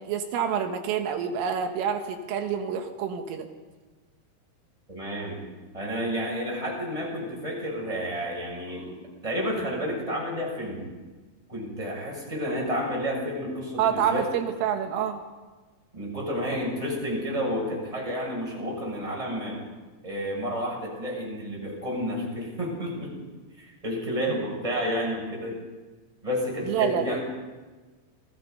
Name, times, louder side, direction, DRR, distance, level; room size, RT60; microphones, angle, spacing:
voice 1, 0.0-3.5 13.8-15.2 26.7-27.2, right 8 dB, 85° right, 4 dB, 4.0 m, -27 dB
voice 2, 4.9-5.4 5.7-8.9 9.2-10.8 11.5-14.3 15.9-19.6 20.0-23.1 23.6-25.6 26.2-27.2, equal, 5° right, -2 dB, 6.7 m, -30 dB
28.5 x 19.5 x 5.4 m, 1.3 s
omnidirectional pair, 5.7 m